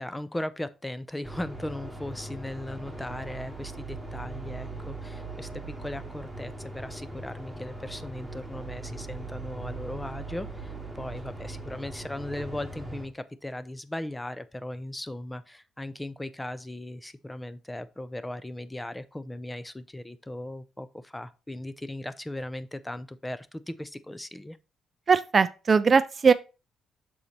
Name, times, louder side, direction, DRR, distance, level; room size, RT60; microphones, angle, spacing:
voice 1, 0.0-24.6, left 1 dB, 10° left, 0.5 m, -38 dB
sound 1, 1.2-13.1, right 2 dB, 5° right, 1.8 m, -40 dB
voice 2, 25.1-26.3, right 5 dB, 40° right, 0.4 m, -20 dB
6.4 x 4.2 x 4.1 m
cardioid pair, 90°, 0 cm